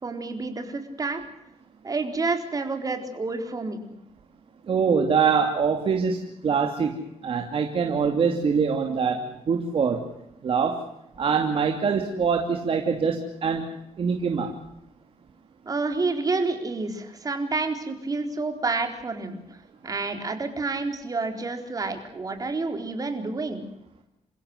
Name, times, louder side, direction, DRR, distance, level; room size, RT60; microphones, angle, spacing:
voice 1, 0.0-1.2 1.8-3.8 15.7-23.7, right 3 dB, 30° right, 6 dB, 4.3 m, -29 dB
voice 2, 4.7-6.9 7.2-10.0 10.4-10.8 11.2-13.6 14.0-14.5, right 6 dB, 50° right, 3 dB, 2.8 m, -24 dB
29.0 x 16.0 x 8.1 m, 0.86 s
cardioid pair, 110°, 12 cm